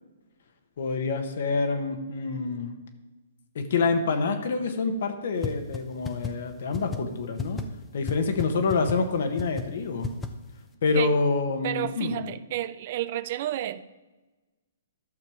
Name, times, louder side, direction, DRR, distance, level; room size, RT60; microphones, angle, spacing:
voice 1, 0.8-2.7 3.5-7.6 7.9-10.1 10.8-12.3, left 4 dB, 65° left, 6 dB, 1.4 m, -27 dB
sound 1, 5.4-5.5 5.7-5.8 6.0-6.3 6.7-7.0 7.4-7.6 8.1-8.2 8.4-8.5 8.7-8.9 9.4-9.6 10.0-10.3, left 5 dB, 15° left, 0.8 m, -30 dB
voice 2, 11.6-13.8, right 13 dB, 50° right, 15 dB, 0.5 m, -31 dB
12.0 x 6.7 x 5.0 m, 1.2 s
hypercardioid pair, 130°, 0 cm